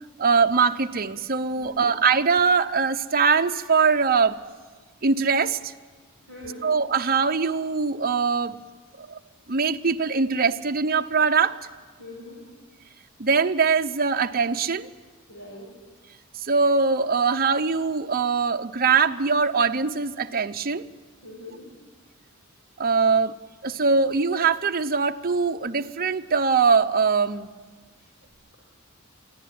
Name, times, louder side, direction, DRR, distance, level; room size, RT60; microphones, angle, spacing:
voice 1, 0.2-4.4 5.0-5.7 6.6-8.6 9.0-9.2 9.5-11.6 13.2-14.9 16.4-20.9 22.8-23.4 23.6-27.5, right 5 dB, 45° right, 7 dB, 0.8 m, -22 dB
voice 2, 1.5-1.9 6.3-6.7 12.0-12.4 15.3-15.7 21.2-21.6 28.0-28.1, left 1 dB, 75° left, -3 dB, 6.1 m, -42 dB
23.5 x 15.0 x 9.4 m, 1.4 s
head